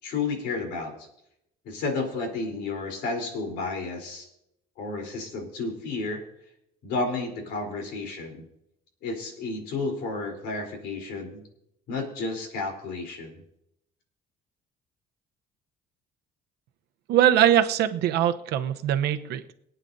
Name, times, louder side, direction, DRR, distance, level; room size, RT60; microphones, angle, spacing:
voice 1, 0.0-1.1 1.7-4.3 4.8-6.2 6.8-8.4 9.0-11.4 11.9-13.3, left 3 dB, 85° left, 2 dB, 3.7 m, -31 dB
voice 2, 17.1-19.5, right 11 dB, 75° right, 9 dB, 0.8 m, -22 dB
23.5 x 9.1 x 2.7 m, 0.78 s
cardioid pair, 110°, 17 cm